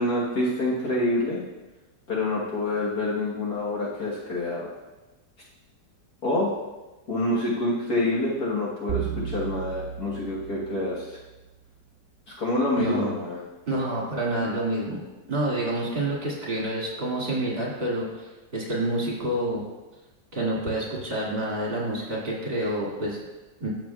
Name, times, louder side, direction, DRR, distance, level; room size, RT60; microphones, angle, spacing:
voice 1, 0.0-1.4 2.1-4.7 6.2-6.5 7.1-11.2 12.3-13.4, left 1 dB, 60° left, -6 dB, 1.8 m, -27 dB
sound 1, 8.9-11.4, right 10 dB, 75° right, 0.5 m, -34 dB
voice 2, 12.8-13.2 13.7-15.0 15.3-19.7 20.3-23.2 23.6-23.7, right 1 dB, 30° right, -4 dB, 2.3 m, -28 dB
14.5 x 5.9 x 2.3 m, 1.1 s
omnidirectional pair, 1.9 m